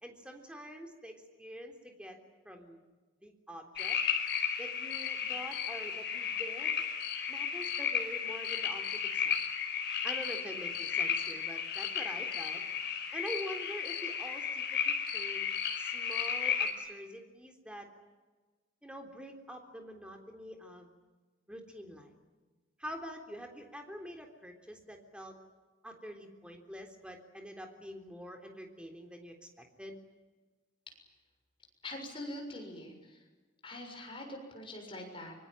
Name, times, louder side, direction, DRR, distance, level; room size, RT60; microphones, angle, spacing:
voice 1, 0.0-2.2 2.5-2.8 3.2-4.0 4.6-6.8 7.3-9.4 10.0-12.6 12.9-15.5 15.8-17.9 18.8-20.9 21.5-22.1 22.8-25.3 25.8-30.0, equal, 5° right, 4 dB, 3.6 m, -46 dB
sound 1, 3.8-16.7, left 7 dB, 55° left, 4.7 m, -34 dB
voice 2, 31.8-33.3 33.6-35.4, left 1 dB, 25° left, 2 dB, 6.9 m, -44 dB
25.0 x 24.0 x 9.1 m, 1.3 s
head